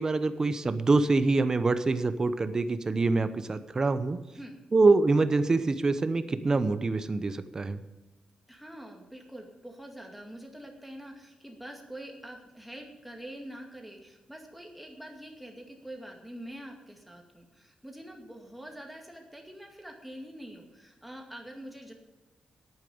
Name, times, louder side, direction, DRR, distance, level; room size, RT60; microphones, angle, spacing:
voice 1, 0.0-4.2 4.7-7.8, right 3 dB, 25° right, 12 dB, 0.8 m, -25 dB
voice 2, 8.5-21.9, right 1 dB, ahead, 1 dB, 2.2 m, -45 dB
11.0 x 8.9 x 7.0 m, 1.1 s
wide cardioid pair, 155°, 2 cm